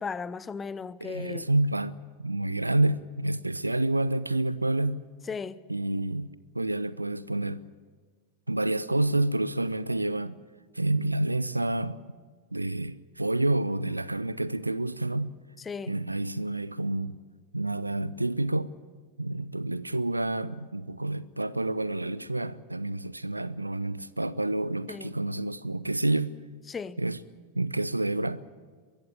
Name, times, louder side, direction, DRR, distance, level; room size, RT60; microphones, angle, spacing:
voice 1, 0.0-1.5 5.3-5.6 15.6-16.0 24.9-25.1 26.7-27.0, left 5 dB, 15° left, 0.7 m, -36 dB
voice 2, 1.0-5.0 5.7-7.6 8.5-10.4 10.7-12.0 12.5-15.3 15.9-17.2 17.5-18.7 19.2-26.3 27.0-27.2 27.5-28.4, right 2 dB, 85° right, 0.6 m, -29 dB
22.5 x 14.5 x 9.6 m
figure-of-eight pair, 90°, 0 cm